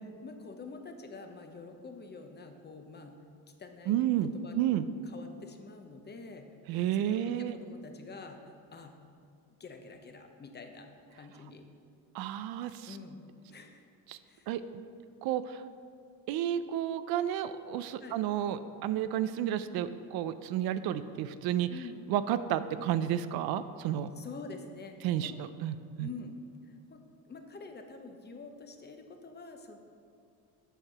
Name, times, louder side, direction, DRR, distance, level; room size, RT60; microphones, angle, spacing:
voice 1, 0.0-3.1 3.6-4.1 4.3-6.5 6.9-9.0 9.6-11.6 12.9-13.2 13.5-13.9 14.2-14.5 18.0-18.2 21.7-22.0 24.2-25.4 26.0-29.8, left 4 dB, 25° left, 5 dB, 0.8 m, -47 dB
voice 2, 3.9-4.3 4.5-4.9 6.7-7.6 12.1-13.0 14.1-14.2 14.5-14.6 15.2-15.6 16.3-21.7 22.1-24.1 25.0-26.1, right 11 dB, 75° right, 12 dB, 0.5 m, -31 dB
7.9 x 4.7 x 5.8 m, 2.5 s
cardioid pair, 110°, 37 cm